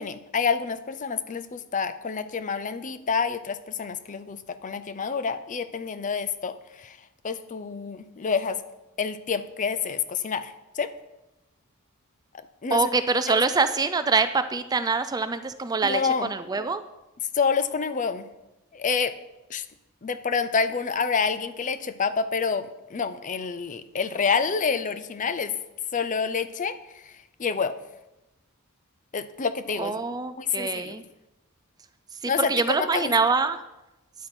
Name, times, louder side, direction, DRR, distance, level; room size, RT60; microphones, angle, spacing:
voice 1, 0.0-7.0 7.2-8.6 9.0-10.9 12.6-12.9 13.3-13.4 15.8-16.3 17.3-18.3 18.7-19.1 19.5-19.6 20.0-22.7 22.9-25.5 25.9-26.7 27.1-27.2 27.4-27.8 29.1-30.0 30.4-31.0 32.3-32.5 32.8-33.1, left 5 dB, 35° left, 11 dB, 0.5 m, -28 dB
voice 2, 12.7-16.8 29.8-31.0 32.2-33.6, right 4 dB, 15° right, 11 dB, 0.3 m, -25 dB
10.0 x 8.9 x 4.4 m, 0.97 s
head